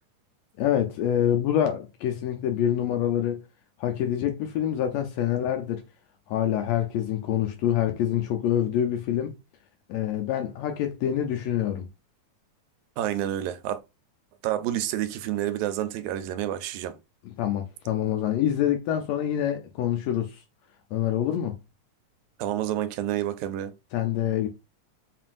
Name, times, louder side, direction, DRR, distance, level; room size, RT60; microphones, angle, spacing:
voice 1, 0.6-3.4 3.8-5.8 6.3-9.3 9.9-11.9 17.2-20.4 20.9-21.6 23.9-24.5, left 10 dB, 80° left, 1.6 m, -26 dB
voice 2, 13.0-13.8 14.4-17.0 22.4-23.7, right 12 dB, 85° right, 1.9 m, -29 dB
5.5 x 2.5 x 2.4 m
omnidirectional pair, 3.4 m